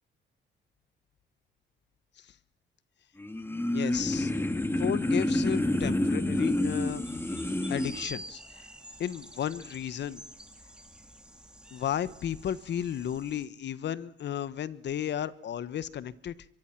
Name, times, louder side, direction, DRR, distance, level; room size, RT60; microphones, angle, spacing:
sound 1, 3.2-8.1, left 1 dB, 10° left, 2.2 m, -28 dB
voice 1, 3.7-4.3 4.8-7.1 7.7-8.7 9.0-10.2 11.7-16.4, left 9 dB, 60° left, 16 dB, 1.3 m, -33 dB
sound 2, 6.3-13.5, right 1 dB, 5° right, 2.6 m, -48 dB
23.5 x 23.5 x 6.0 m, 0.81 s
cardioid pair, 90°, 20 cm